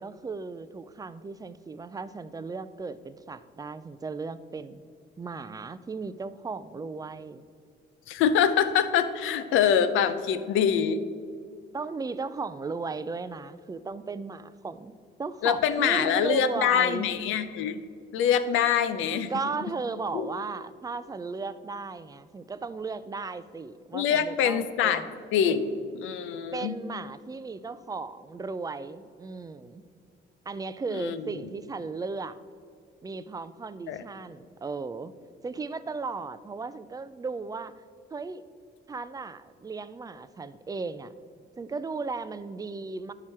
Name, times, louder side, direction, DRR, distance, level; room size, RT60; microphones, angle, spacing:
voice 1, 0.0-4.8 5.2-7.4 11.7-14.9 15.2-17.1 19.3-25.1 26.5-29.8 30.5-32.4 33.0-35.1 35.4-37.7 38.1-38.4 38.9-41.1 41.6-43.1, right 4 dB, 20° right, 14 dB, 0.3 m, -35 dB
voice 2, 8.1-11.0 15.4-17.8 18.1-19.3 20.1-20.3 23.9-25.0 25.3-25.7 25.9-26.7 30.9-31.2 33.9-34.0, left 8 dB, 90° left, 11 dB, 0.5 m, -24 dB
10.5 x 4.8 x 4.3 m, 2.3 s
cardioid pair, 90°, 20 cm